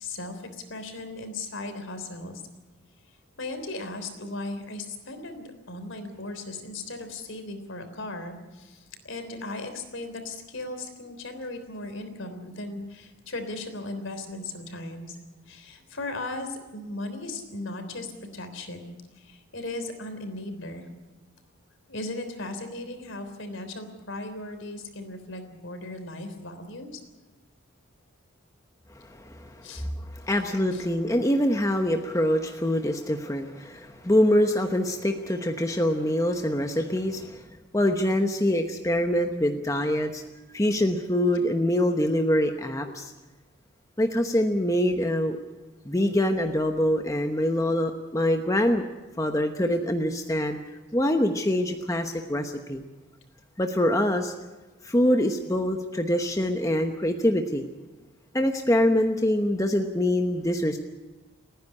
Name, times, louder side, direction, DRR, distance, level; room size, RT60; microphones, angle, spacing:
voice 1, 0.0-2.4 3.4-15.2 15.5-20.9 21.9-26.9 29.6-29.9 30.7-30.8, left 2 dB, 65° left, 7 dB, 3.5 m, -37 dB
voice 2, 28.9-29.8 30.1-37.4 37.7-40.2 40.5-43.1 44.0-45.4 45.8-48.8 49.2-50.6 50.9-52.8 53.6-54.3 54.8-57.7 58.3-60.8, left 1 dB, 15° left, 4 dB, 1.0 m, -24 dB
29.5 x 10.5 x 9.9 m, 1.2 s
head